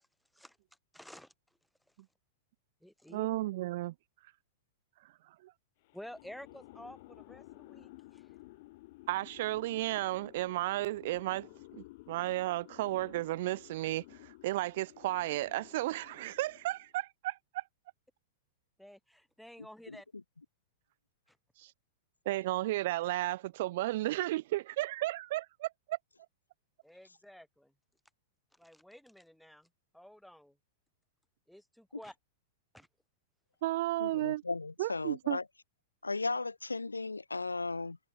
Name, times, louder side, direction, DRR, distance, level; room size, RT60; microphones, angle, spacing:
voice 1, 0.9-1.3 2.8-3.3 5.9-8.3 18.8-20.0 21.3-21.4 26.8-27.7 28.6-29.7 29.9-30.5 31.5-32.1 32.7-32.9, equal, ahead, 2.9 m, -51 dB
voice 2, 3.1-3.9 5.4-5.5 9.1-17.6 21.6-21.7 22.3-26.0 33.6-34.4 34.8-35.4, right 17 dB, 50° right, 0.6 m, -33 dB
sound 1, 5.8-17.0, left 20 dB, 50° left, 4.3 m, -54 dB
voice 3, 34.0-35.4 36.0-38.0, left 3 dB, 80° left, 0.8 m, -36 dB
figure-of-eight pair, 100°, 0 cm